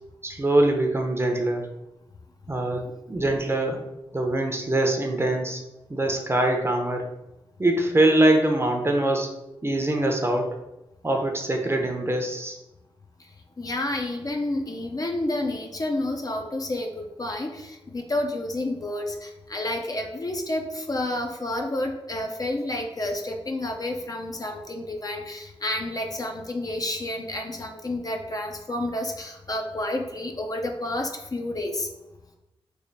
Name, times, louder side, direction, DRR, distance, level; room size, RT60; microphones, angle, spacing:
voice 1, 0.2-1.7 2.5-2.8 3.1-3.8 4.1-5.6 5.9-7.1 7.6-9.3 9.6-10.6 11.0-12.6, right 1 dB, 25° right, 3 dB, 0.6 m, -23 dB
voice 2, 13.6-31.9, left 1 dB, 40° left, 3 dB, 0.5 m, -30 dB
3.2 x 2.1 x 3.9 m, 0.95 s
cardioid pair, 55°, 10 cm